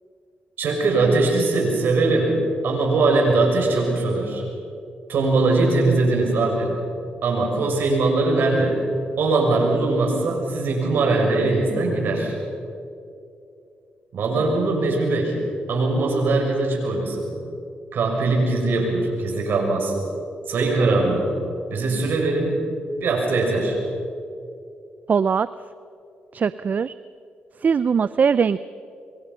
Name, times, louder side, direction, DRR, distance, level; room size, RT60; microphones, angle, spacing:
voice 1, 0.6-2.4 2.6-4.4 5.1-6.8 7.2-8.8 9.2-12.3 14.1-15.4 15.7-17.3 17.9-19.9 20.5-21.3 21.7-23.8, right 3 dB, 75° right, 1 dB, 6.6 m, -21 dB
voice 2, 25.1-25.5 26.3-26.9 27.6-28.6, right 6 dB, 50° right, 15 dB, 0.5 m, -20 dB
26.5 x 24.5 x 5.6 m, 2.5 s
cardioid pair, 75°, 4 cm